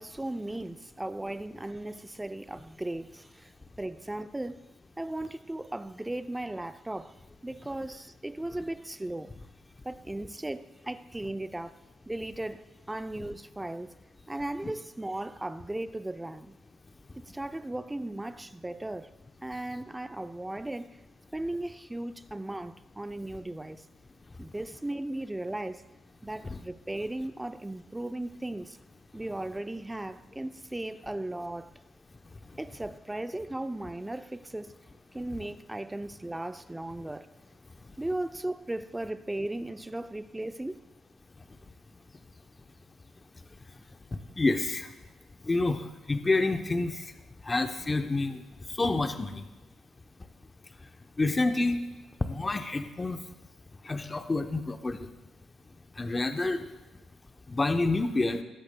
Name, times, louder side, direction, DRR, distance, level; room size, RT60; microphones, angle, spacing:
voice 1, 0.0-3.5 3.8-4.6 5.0-7.2 7.4-9.3 9.8-11.8 12.1-14.0 14.3-16.6 17.3-19.1 19.4-21.0 21.3-23.9 24.4-25.8 26.2-28.8 29.1-31.7 32.6-34.8 35.1-37.3 38.0-40.8, right 1 dB, 10° right, 0.4 m, -36 dB
voice 2, 37.7-38.0 41.4-41.5 43.5-43.8 44.1-44.9 45.4-47.2 47.4-49.4 50.8-50.9 51.2-51.9 52.2-53.2 53.8-55.1 55.7-56.7 57.5-58.4, left 2 dB, 25° left, 0.7 m, -29 dB
19.0 x 8.4 x 2.2 m
cardioid pair, 90°, 0 cm